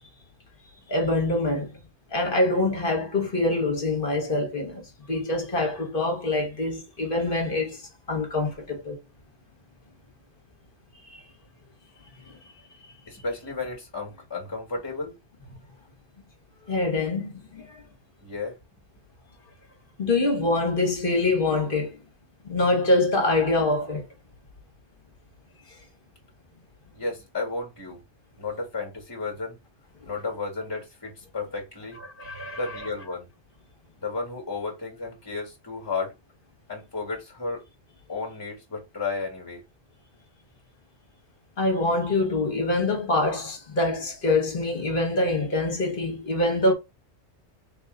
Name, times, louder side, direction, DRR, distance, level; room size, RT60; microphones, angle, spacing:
voice 1, 0.9-1.7 2.1-7.8 8.1-9.0 11.1-11.2 12.3-12.4 16.7-17.8 20.0-22.0 22.4-24.1 30.0-30.1 32.2-32.6 41.6-46.7, left 2 dB, 50° left, 1.3 m, -25 dB
voice 2, 13.1-15.1 18.2-18.6 26.9-28.0 28.4-29.6 30.0-32.0 32.5-33.3 34.0-36.1 36.7-37.6 38.1-39.6, left 4 dB, 20° left, 1.5 m, -33 dB
3.4 x 2.9 x 3.7 m
omnidirectional pair, 1.2 m